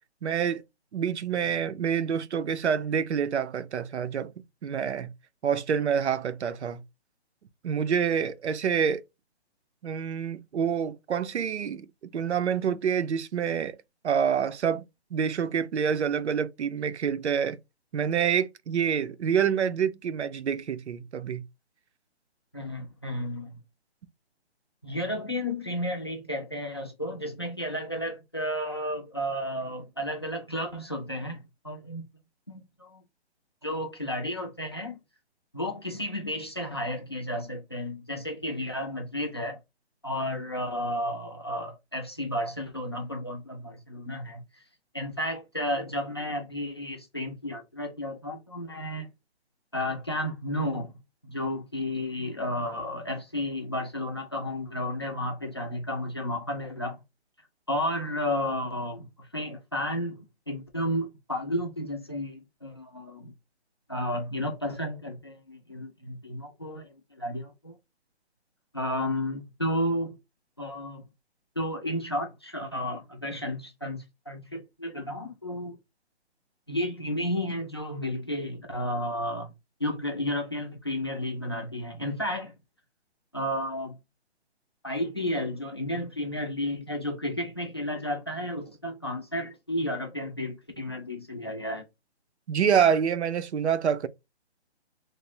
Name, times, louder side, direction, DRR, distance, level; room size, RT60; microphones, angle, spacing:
voice 1, 0.2-0.6 0.9-4.3 4.6-5.1 5.4-6.8 7.6-9.0 9.8-13.8 14.0-14.8 15.1-17.6 17.9-21.4 92.5-94.1, right 7 dB, 85° right, 0.6 m, -27 dB
voice 2, 22.5-23.6 24.8-32.1 32.5-33.0 33.6-35.0 35.5-39.6 40.0-44.6 44.9-49.1 49.7-51.0 51.2-57.0 57.7-63.3 63.9-67.8 68.7-70.2 70.6-71.0 71.6-75.8 76.7-79.5 79.8-82.6 83.3-84.0 84.8-91.9, left 1 dB, 25° left, 0.5 m, -32 dB
3.2 x 2.1 x 4.1 m
hypercardioid pair, 175°, 33 cm